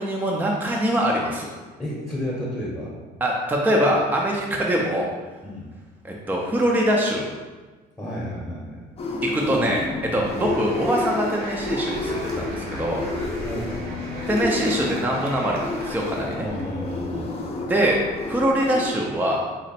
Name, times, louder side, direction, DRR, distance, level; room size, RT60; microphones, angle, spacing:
voice 1, 0.0-1.5 3.2-5.1 6.0-7.3 9.2-13.0 14.3-16.5 17.7-18.0 18.3-19.4, equal, 10° right, -2 dB, 0.5 m, -23 dB
voice 2, 1.8-2.9 5.4-5.7 8.0-8.9 10.3-10.5 13.4-14.1 16.4-17.3, equal, 10° left, -6 dB, 0.9 m, -32 dB
sound 1, 9.0-18.9, left 2 dB, 35° left, 0.6 m, -31 dB
sound 2, 10.2-16.9, left 1 dB, 65° right, 1.0 m, -37 dB
4.2 x 2.1 x 4.0 m, 1.3 s
cardioid pair, 110°, 17 cm